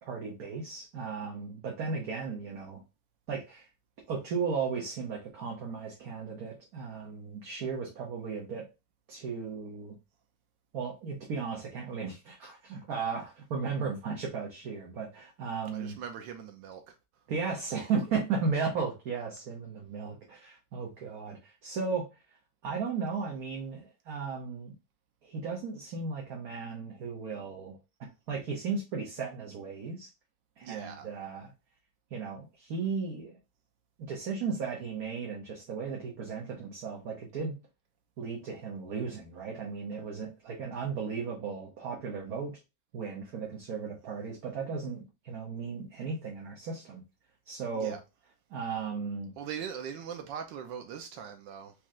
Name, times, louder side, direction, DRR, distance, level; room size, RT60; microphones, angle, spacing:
voice 1, 0.0-2.8 3.3-3.7 4.1-8.7 9.1-10.0 10.7-16.0 17.3-22.4 22.6-24.8 25.2-30.1 30.6-31.5 32.1-33.4 34.1-37.5 38.2-42.6 42.9-47.0 47.5-48.0 48.5-49.3, right 5 dB, 55° right, 1.4 m, -35 dB
voice 2, 15.7-16.9 30.6-31.1 47.8-48.0 49.4-51.7, right 7 dB, 80° right, 1.4 m, -41 dB
4.3 x 3.2 x 3.6 m
omnidirectional pair, 2.0 m